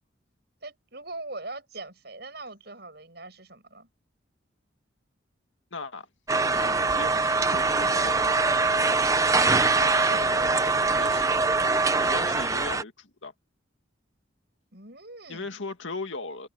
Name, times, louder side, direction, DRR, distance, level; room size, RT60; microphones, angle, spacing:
voice 1, 0.6-3.9 9.7-10.8 14.7-15.6, right 2 dB, 55° right, 7.8 m, -41 dB
voice 2, 5.7-6.1 6.5-8.3 10.1-10.4 10.9-13.3 15.3-16.5, left 3 dB, 75° left, 2.2 m, -38 dB
sound 1, 6.3-12.8, right 3 dB, 15° right, 0.7 m, -23 dB
head